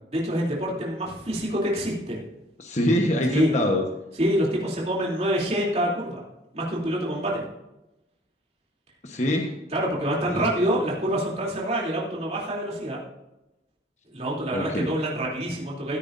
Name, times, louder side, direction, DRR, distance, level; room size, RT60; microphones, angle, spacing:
voice 1, 0.1-2.2 3.3-3.5 4.2-6.2 6.5-7.4 9.7-13.0 14.1-16.0, equal, 35° right, -4 dB, 3.0 m, -26 dB
voice 2, 2.6-3.8 9.0-9.6 10.3-10.4 14.5-14.9, left 1 dB, 40° left, 2 dB, 1.2 m, -24 dB
15.5 x 9.4 x 2.6 m, 0.94 s
head